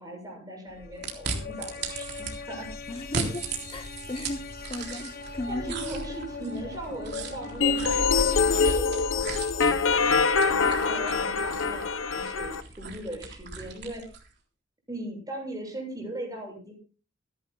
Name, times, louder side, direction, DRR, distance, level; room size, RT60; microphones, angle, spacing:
voice 1, 0.0-2.1 2.5-2.7 5.5-14.0 14.9-16.7, right 1 dB, 20° right, 7.5 m, -39 dB
sound 1, 0.7-8.8, left 3 dB, 50° left, 1.3 m, -39 dB
sound 2, 1.0-2.3 3.0-5.3 5.6-14.3, right 5 dB, 55° right, 3.6 m, -38 dB
voice 2, 2.9-3.4 3.7-4.4 4.7-5.7, left 2 dB, 25° left, 0.7 m, -35 dB
sound 3, 7.6-12.6, left 5 dB, 75° left, 1.0 m, -24 dB
26.5 x 11.0 x 2.3 m
head